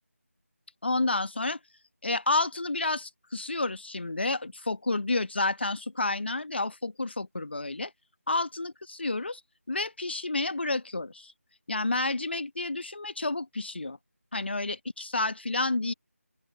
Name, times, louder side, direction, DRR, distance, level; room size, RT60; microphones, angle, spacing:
voice 1, 0.8-1.6 2.0-7.9 8.3-9.4 9.7-11.3 11.7-14.0 14.3-15.9, left 2 dB, 45° left, 1.5 m, -30 dB
open air
figure-of-eight pair, 165°, 8 cm